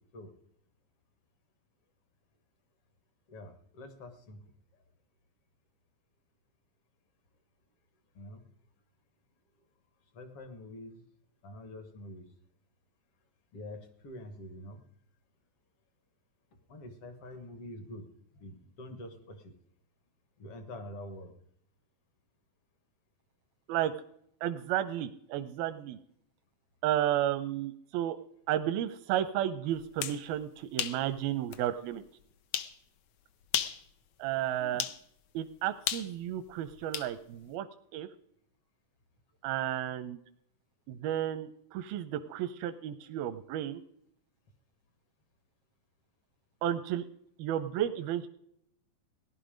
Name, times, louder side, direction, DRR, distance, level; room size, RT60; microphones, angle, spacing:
voice 1, 3.3-4.4 8.1-8.4 10.1-11.0 11.4-12.2 13.5-14.8 16.7-18.0 18.4-19.5 20.4-21.3 34.6-34.9, left 1 dB, 55° left, 8 dB, 1.8 m, -46 dB
voice 2, 24.4-26.0 26.8-28.2 28.5-32.0 34.2-34.8 35.3-37.7 37.9-38.1 39.4-40.2 40.9-43.8 46.6-47.0 47.4-48.3, right 11 dB, 85° right, 9 dB, 2.5 m, -32 dB
sound 1, 29.8-30.2 30.8-31.0 31.5-31.6 32.5-32.8 33.4-33.8 34.8-35.0 35.9-37.1, left 11 dB, 75° left, 1.7 m, -33 dB
18.0 x 11.0 x 5.0 m, 0.71 s
omnidirectional pair, 4.2 m